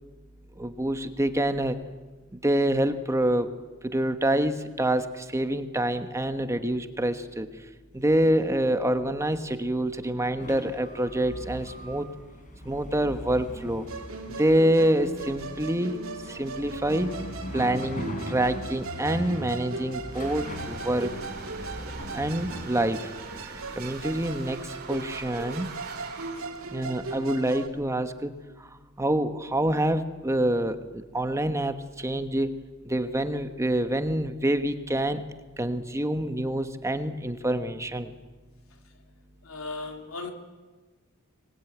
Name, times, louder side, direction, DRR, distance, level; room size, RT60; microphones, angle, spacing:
voice 1, 0.6-1.8 2.3-3.5 3.8-7.5 7.9-12.1 12.6-13.8 14.4-16.0 16.3-17.1 17.5-21.1 22.1-23.1 23.4-25.7 26.7-28.7 29.0-32.6 32.8-35.2 35.6-38.1, right 1 dB, 15° right, 8 dB, 1.2 m, -26 dB
sound 1, 10.4-23.4, equal, 40° left, 4.5 m, -40 dB
Musical instrument, 13.9-27.7, right 3 dB, 80° right, 2.7 m, -39 dB
sound 2, 20.2-27.2, right 4 dB, 50° right, 5.4 m, -42 dB
voice 2, 39.4-40.3, left 3 dB, 80° left, 4 dB, 3.2 m, -36 dB
24.5 x 20.0 x 9.2 m, 1.3 s
head